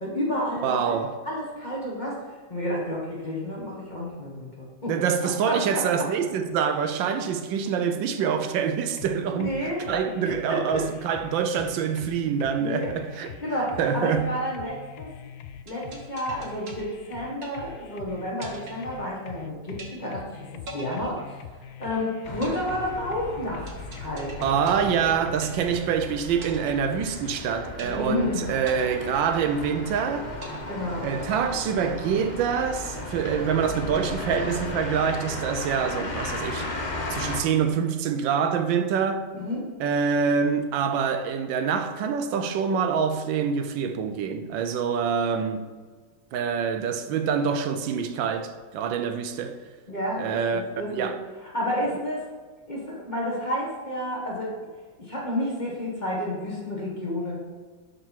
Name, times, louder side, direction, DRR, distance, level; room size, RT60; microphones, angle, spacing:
voice 1, 0.0-1.0 1.2-2.2 2.5-4.9 5.4-5.8 9.3-9.9 10.5-10.8 12.6-12.9 13.4-15.1 15.6-20.4 20.7-21.2 21.8-23.7 23.9-24.9 27.8-28.5 30.6-31.0 39.4-39.6 49.9-51.1 51.5-52.2 52.7-54.5 55.0-57.4, left 1 dB, 25° left, 1.6 m, -30 dB
voice 2, 0.6-1.2 4.9-9.6 9.9-13.3 13.8-14.3 24.4-30.3 31.0-36.7 37.1-39.3 39.8-45.6 46.3-49.6 50.2-50.6 50.9-51.2, right 7 dB, 80° right, 1.3 m, -26 dB
sound 1, 9.0-25.9, left 8 dB, 80° left, 1.3 m, -43 dB
sound 2, 15.7-18.0 18.4-19.4 19.8-20.3 20.7-21.9 22.4-26.0 26.4-27.4 27.8-28.3 28.7-29.9 30.4-31.4, right 2 dB, 40° right, 1.0 m, -44 dB
sound 3, 22.2-37.4, left 2 dB, 50° left, 0.5 m, -36 dB
11.5 x 3.9 x 4.5 m
omnidirectional pair, 2.1 m